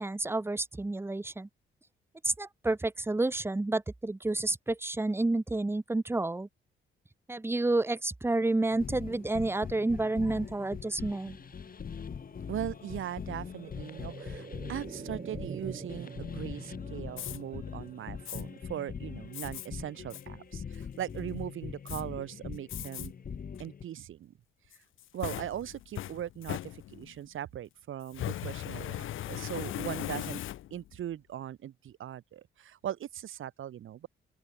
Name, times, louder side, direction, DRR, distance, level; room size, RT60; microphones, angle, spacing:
voice 1, 0.0-1.5 2.2-6.5 7.3-11.4, right 2 dB, 10° right, 1.4 m, -30 dB
sound 1, 8.7-23.8, left 6 dB, 45° left, 6.0 m, -42 dB
sound 2, 10.7-20.4 20.7-20.8, right 5 dB, 35° right, 2.5 m, -48 dB
voice 2, 12.5-23.1 23.6-24.3 25.1-30.4 30.7-34.1, right 11 dB, 75° right, 4.2 m, -39 dB
Fire, 17.1-17.4 18.3-18.4 19.3-19.7 20.1-20.2 20.7-21.2 21.9-22.0 22.7-23.1 23.6-23.7 24.7-27.2 28.1-30.9, left 13 dB, 75° left, 0.8 m, -38 dB
open air
cardioid pair, 120°, 21 cm